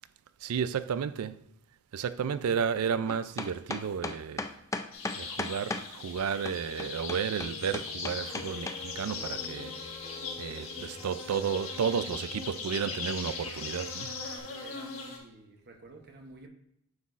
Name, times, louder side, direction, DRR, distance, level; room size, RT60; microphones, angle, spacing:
voice 1, 0.4-1.4 1.9-4.4 5.2-9.8 10.4-14.1, right 7 dB, 80° right, 0.4 m, -32 dB
sound 1, 3.1-5.9 6.5-8.8, left 3 dB, 15° left, 0.4 m, -35 dB
sound 2, 4.9-15.2, left 4 dB, 70° left, 1.5 m, -40 dB
sound 3, 7.4-14.4, left 3 dB, 35° left, 0.9 m, -49 dB
voice 2, 14.3-16.5, right 2 dB, 50° right, 0.9 m, -51 dB
9.4 x 6.0 x 2.5 m
head